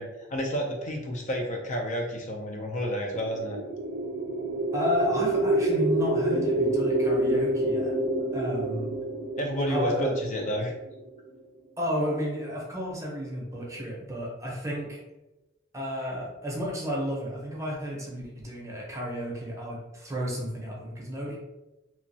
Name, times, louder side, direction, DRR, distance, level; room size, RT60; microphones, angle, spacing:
voice 1, 0.0-3.6 9.4-10.7, equal, 40° left, 1 dB, 0.4 m, -30 dB
sound 1, 3.0-11.1, right 1 dB, 60° right, 0.4 m, -28 dB
voice 2, 4.7-7.9 8.3-8.9 9.7-10.2 11.8-15.0 15.7-21.4, equal, 15° right, -3 dB, 0.7 m, -32 dB
2.9 x 2.2 x 2.6 m, 1.0 s
head